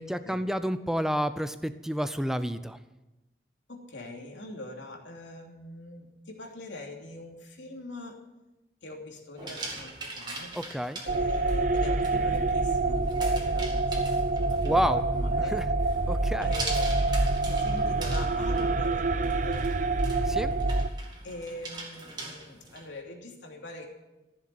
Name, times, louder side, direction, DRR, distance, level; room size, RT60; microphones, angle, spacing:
voice 1, 0.0-2.8 10.5-11.0 14.6-15.0 15.4-15.7 16.1-16.5 20.3-20.5, equal, 5° right, 11 dB, 0.6 m, -29 dB
voice 2, 3.7-8.2 8.8-10.5 11.0-15.5 16.4-16.9 17.5-19.7 21.2-23.8, left 2 dB, 90° left, 1 dB, 2.9 m, -43 dB
sound 1, 9.4-22.9, right 3 dB, 25° right, 2.2 m, -42 dB
sound 2, 11.1-20.9, right 2 dB, 45° right, 0.6 m, -26 dB
15.0 x 7.4 x 9.4 m, 1.0 s
head